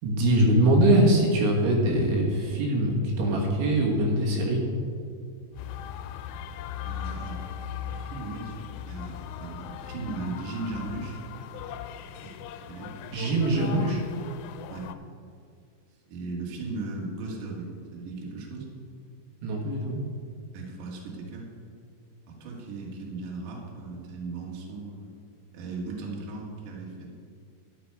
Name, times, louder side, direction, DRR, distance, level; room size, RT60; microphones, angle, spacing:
voice 1, 0.0-4.6 13.1-14.0 19.4-20.0, right 1 dB, 75° right, -1 dB, 3.7 m, -23 dB
sound 1, 5.5-14.9, left 9 dB, 85° left, 3.1 m, -39 dB
voice 2, 6.8-7.4 7.9-11.2 12.2-12.4 12.7-12.9 13.5-13.8 14.7-14.9 16.1-18.7 20.5-21.5 22.3-25.1 25.5-27.1, right 3 dB, 55° right, -3 dB, 2.8 m, -37 dB
11.5 x 11.0 x 4.7 m, 2.3 s
omnidirectional pair, 5.7 m